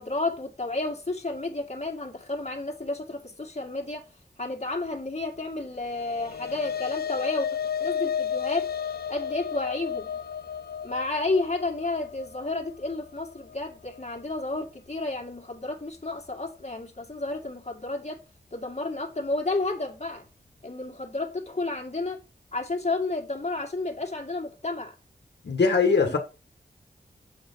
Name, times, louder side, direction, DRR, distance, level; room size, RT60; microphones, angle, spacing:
voice 1, 0.0-4.1 4.4-7.5 7.8-8.7 9.1-10.1 10.8-18.2 18.5-20.3 20.6-22.2 22.5-24.9 26.1-26.2, left 2 dB, 40° left, 2.0 m, -31 dB
sound 1, 5.8-14.4, left 8 dB, 65° left, 0.5 m, -33 dB
voice 2, 25.4-26.2, left 4 dB, 85° left, 1.4 m, -21 dB
7.4 x 4.4 x 5.3 m
wide cardioid pair, 55°, 17 cm